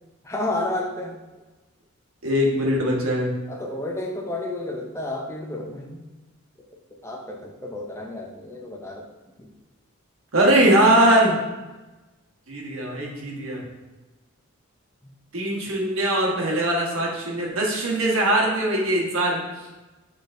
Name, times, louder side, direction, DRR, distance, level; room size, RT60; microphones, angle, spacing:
voice 1, 0.2-1.2 3.5-6.0 6.9-9.1 9.4-9.5, left 1 dB, 15° left, 0 dB, 0.4 m, -31 dB
voice 2, 2.2-3.3 10.3-11.4 12.5-13.6 15.3-19.7, right 1 dB, 70° right, -2 dB, 1.0 m, -21 dB
6.3 x 3.3 x 2.5 m, 1.1 s
head